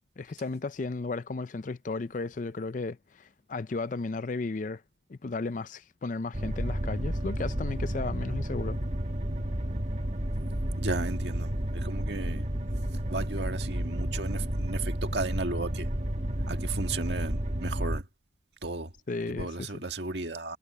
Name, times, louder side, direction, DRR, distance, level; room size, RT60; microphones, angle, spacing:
voice 1, 0.2-4.8 5.1-8.8 19.1-19.8, left 3 dB, 45° left, 0.5 m, -34 dB
sound 1, 6.3-18.0, right 1 dB, 40° right, 1.4 m, -31 dB
voice 2, 10.8-12.5 13.1-15.9 16.5-18.0 18.6-18.9 19.3-20.6, right 3 dB, 65° right, 1.8 m, -34 dB
head